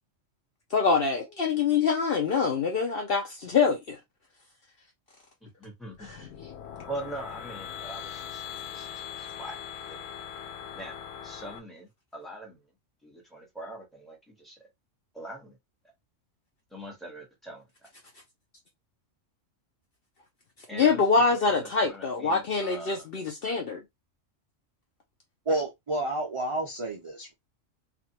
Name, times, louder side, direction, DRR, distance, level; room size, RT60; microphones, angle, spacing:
voice 1, 0.7-4.0 6.1-6.2 20.7-23.8, left 5 dB, 60° left, 0.7 m, -25 dB
voice 2, 5.4-6.3 6.9-9.6 9.9-10.1 10.7-11.0 11.2-12.6 13.0-14.6 15.1-15.6 16.7-17.7 20.7-21.0 21.5-23.1, right 1 dB, ahead, 1.1 m, -42 dB
sound 1, 5.9-11.6, left 9 dB, 85° left, 1.0 m, -41 dB
voice 3, 25.5-27.3, right 2 dB, 45° right, 0.4 m, -30 dB
2.5 x 2.4 x 2.8 m
omnidirectional pair, 1.3 m